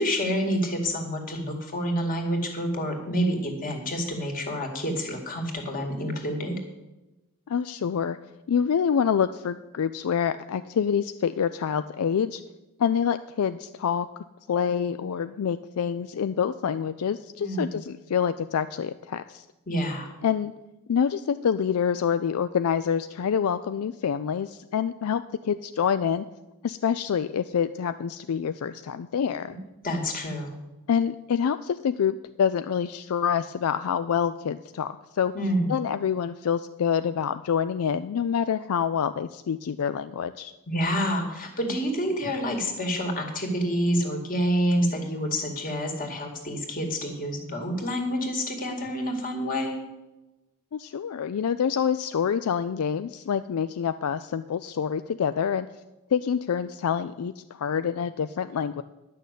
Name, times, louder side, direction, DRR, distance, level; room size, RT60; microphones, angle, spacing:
voice 1, 0.0-6.6 17.4-17.7 19.7-20.1 29.8-30.6 35.3-35.7 40.7-49.8, equal, 40° left, 2 dB, 2.2 m, -28 dB
voice 2, 7.5-8.2 8.5-12.4 12.8-14.1 14.5-19.4 20.2-20.5 20.9-26.2 26.6-29.6 30.9-35.3 35.7-40.5 50.7-55.7 56.1-58.8, left 7 dB, 75° left, 12 dB, 0.4 m, -26 dB
10.5 x 6.5 x 8.3 m, 1.0 s
head